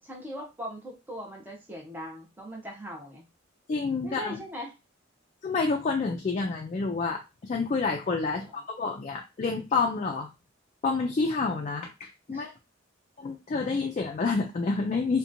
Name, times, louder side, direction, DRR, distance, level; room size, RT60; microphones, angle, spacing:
voice 1, 0.0-3.3 4.0-4.7 8.3-8.5 12.3-12.5, equal, 10° right, -1 dB, 0.6 m, -40 dB
voice 2, 3.7-4.4 5.4-10.3 10.8-12.5 13.2-15.2, left 4 dB, 35° left, 1 dB, 0.3 m, -28 dB
2.7 x 2.1 x 2.5 m, 0.25 s
head